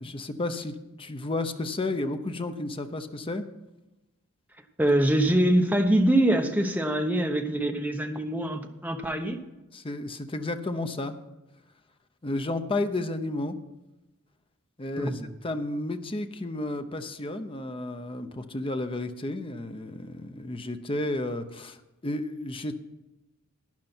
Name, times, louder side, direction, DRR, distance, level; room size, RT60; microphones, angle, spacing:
voice 1, 0.0-3.5 9.7-11.2 12.2-13.6 14.8-21.8 22.0-22.7, left 2 dB, 25° left, 9 dB, 0.8 m, -32 dB
voice 2, 4.8-9.4 15.0-15.3, right 1 dB, 10° right, 4 dB, 1.0 m, -24 dB
12.0 x 10.0 x 4.4 m, 1.0 s
head